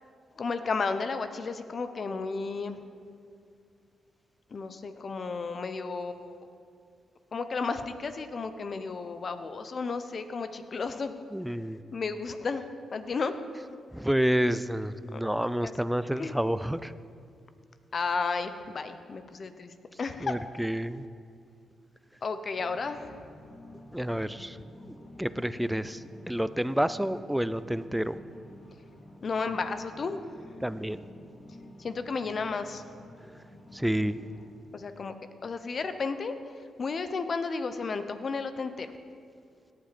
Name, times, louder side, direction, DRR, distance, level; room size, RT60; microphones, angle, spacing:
voice 1, 0.4-2.8 4.5-6.5 7.3-11.2 11.5-11.6 11.9-13.3 13.7-13.8 15.1-15.2 15.6-15.7 16.2-16.4 17.9-20.4 22.2-23.2 29.2-30.5 31.8-32.8 34.7-35.1 35.4-38.9, left 4 dB, 50° left, 10 dB, 0.9 m, -33 dB
voice 2, 11.3-11.8 13.9-16.9 20.2-21.1 23.9-24.6 24.8-28.2 30.6-31.0 33.7-34.2, equal, 5° right, 14 dB, 0.5 m, -29 dB
sound 1, 22.5-34.5, left 1 dB, 35° left, 3.1 m, -50 dB
17.5 x 8.9 x 4.3 m, 2.3 s
supercardioid pair, 60°, 0 cm